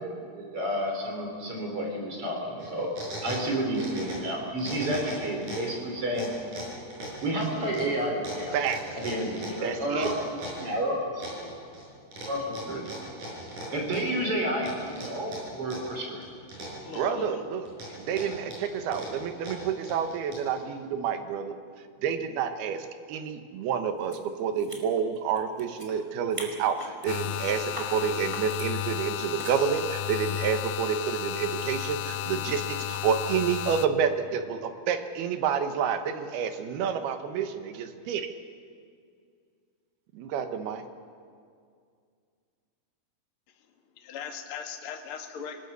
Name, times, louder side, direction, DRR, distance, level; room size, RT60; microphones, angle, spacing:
voice 1, 0.0-2.9 3.2-6.3 7.2-8.6 8.9-11.5 12.2-12.8 13.7-16.2, right 1 dB, 35° right, 1 dB, 4.3 m, -30 dB
sound 1, 2.6-4.3 4.6-5.7 6.1-10.7 11.2-11.8 12.1-14.2 14.6-15.9 16.2-17.2 17.7-20.6, right 1 dB, 55° right, 8.1 m, -39 dB
voice 2, 9.6-10.1 16.9-17.7 18.0-21.6 22.0-38.3 40.1-40.8, right 7 dB, 85° right, 8 dB, 3.2 m, -29 dB
voice 3, 16.8-17.4 17.9-18.4 44.0-45.6, left 6 dB, 50° left, 4 dB, 1.9 m, -39 dB
sound 2, 24.1-24.2 24.5-26.0 26.3-27.2 27.7-27.9 28.3-28.7 29.4-29.6, right 1 dB, 10° right, 2.0 m, -41 dB
sound 3, 27.1-33.9, left 13 dB, 75° left, 2.3 m, -33 dB
26.5 x 19.0 x 6.8 m, 2.2 s
omnidirectional pair, 4.4 m